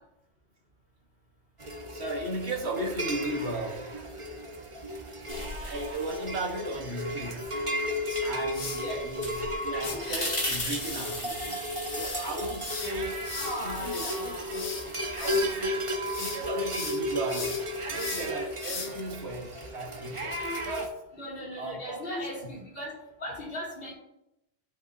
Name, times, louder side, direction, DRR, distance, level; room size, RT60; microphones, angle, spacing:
sound 1, 1.6-20.9, equal, 30° right, 0.9 m, -34 dB
voice 1, 1.9-3.9 5.6-7.6 8.2-14.9 15.2-21.0 21.6-22.5, right 1 dB, 65° right, 1 dB, 1.5 m, -36 dB
sound 2, 5.3-6.8 7.2-15.9, left 1 dB, 35° left, 1.9 m, -39 dB
sound 3, 8.1-8.9 9.8-10.0 10.8-15.5 15.9-16.4 16.7-19.1, left 4 dB, 70° left, 1.4 m, -38 dB
voice 2, 13.3-14.6 18.8-19.0 21.1-22.9 23.2-23.9, left 1 dB, 55° left, -3 dB, 2.5 m, -38 dB
13.5 x 5.3 x 2.7 m, 0.87 s
omnidirectional pair, 1.2 m